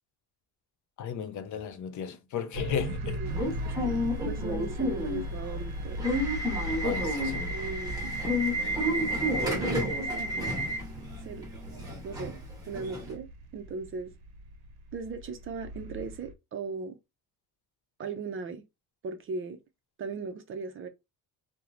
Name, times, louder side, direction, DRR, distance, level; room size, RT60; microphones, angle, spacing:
voice 1, 1.0-3.2 6.8-7.5, left 8 dB, 55° left, 0.5 m, -35 dB
sound 1, 2.5-16.3, equal, 85° right, 0.6 m, -39 dB
voice 2, 3.0-3.3 3.7-4.0 4.2-6.1 7.5-8.2 9.4-10.6 11.2-11.5 12.0-14.1 14.9-17.0 18.0-18.6 19.0-19.6 20.0-20.9, right 4 dB, 35° right, 0.4 m, -38 dB
Subway metro underground / Alarm, 3.3-13.1, equal, 10° right, 1.0 m, -31 dB
2.9 x 2.0 x 2.4 m
cardioid pair, 150°, 35 cm